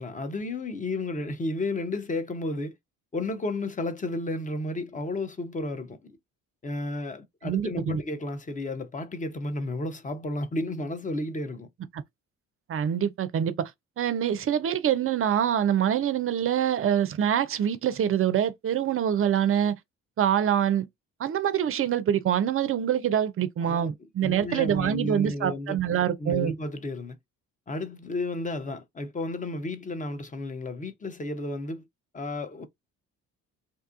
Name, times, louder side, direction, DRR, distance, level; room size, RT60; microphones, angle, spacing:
voice 1, 0.0-2.7 3.1-6.2 6.6-11.7 23.6-23.9 24.2-27.2 27.7-31.8 32.1-32.6, left 2 dB, 20° left, 0.6 m, -32 dB
voice 2, 7.4-8.0 11.9-12.0 12.7-13.7 14.0-19.7 20.2-20.9 21.2-26.5, right 9 dB, 35° right, 0.5 m, -25 dB
2.6 x 2.3 x 2.5 m
hypercardioid pair, 50°, 41 cm